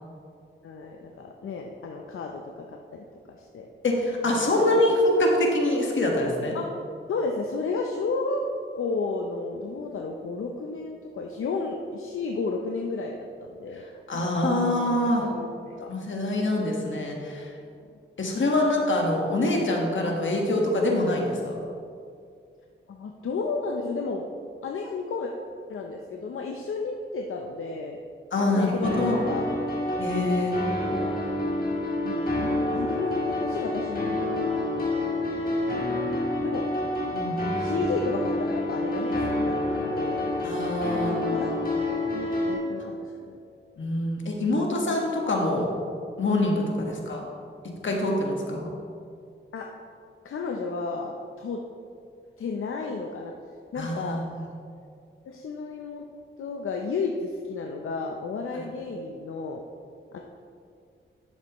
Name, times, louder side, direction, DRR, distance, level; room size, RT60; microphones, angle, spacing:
voice 1, 0.6-3.0 3.3-3.7 4.2-4.4 6.5-6.8 7.1-8.4 8.8-13.8 14.6-15.9 22.9-24.2 24.6-25.3 25.7-28.0 28.4-29.5 30.9-31.1 32.0-34.9 35.2-36.6 37.6-40.3 40.9-41.7 42.1-43.0 44.5-44.8 46.8-46.9 49.5-49.7 50.2-51.6 52.4-53.3 53.7-54.2 55.3-56.1 56.4-59.6 60.1-60.2, left 4 dB, 85° left, 2 dB, 0.6 m, -33 dB
voice 2, 3.8-6.6 14.1-15.3 15.9-17.5 18.2-21.6 28.3-29.2 30.0-30.6 37.1-37.4 40.4-41.4 43.8-45.7 46.2-47.2 47.8-48.7 53.8-54.3 58.5-58.6, left 1 dB, 65° left, 0 dB, 1.5 m, -25 dB
sound 1, 28.8-42.5, left 1 dB, 45° left, 1.6 m, -28 dB
10.5 x 7.4 x 3.0 m, 2.4 s
cardioid pair, 75°, 21 cm